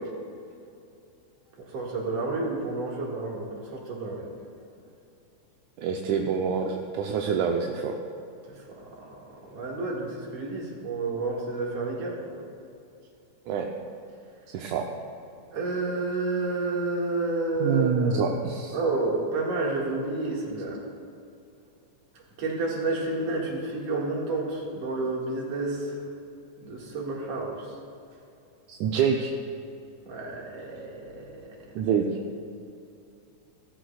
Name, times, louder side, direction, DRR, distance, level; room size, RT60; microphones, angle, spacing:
voice 1, 1.7-4.2 8.7-9.2 9.5-12.2 15.5-18.2 18.7-20.8 22.4-26.0 26.6-27.6 30.1-31.3, right 3 dB, 60° right, -3 dB, 2.9 m, -30 dB
voice 2, 5.8-8.0 13.5-13.7 14.5-14.9 17.6-18.8 28.7-29.3 31.8-32.1, right 6 dB, 80° right, 1 dB, 2.1 m, -26 dB
16.5 x 14.0 x 2.4 m, 2.6 s
omnidirectional pair, 3.4 m